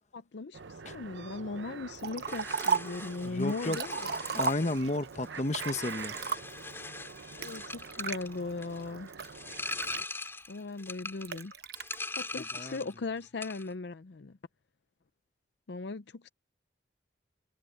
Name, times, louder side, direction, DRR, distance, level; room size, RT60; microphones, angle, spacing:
voice 1, 0.1-4.1 7.4-9.1 10.5-11.5 12.2-14.4 15.7-16.3, left 3 dB, 70° left, 0.6 m, -38 dB
sound 1, 0.5-10.1, right 5 dB, 85° right, 0.8 m, -46 dB
Liquid, 2.0-3.0 3.5-5.0 5.5-6.7 7.4-8.2 8.8-10.5 11.2-12.0, right 5 dB, 60° right, 1.0 m, -34 dB
sound 2, 2.3-13.0 13.2-13.7, left 3 dB, 15° left, 4.0 m, -42 dB
voice 2, 3.2-3.8 4.3-6.2 12.4-12.8, left 2 dB, 40° left, 1.1 m, -32 dB
head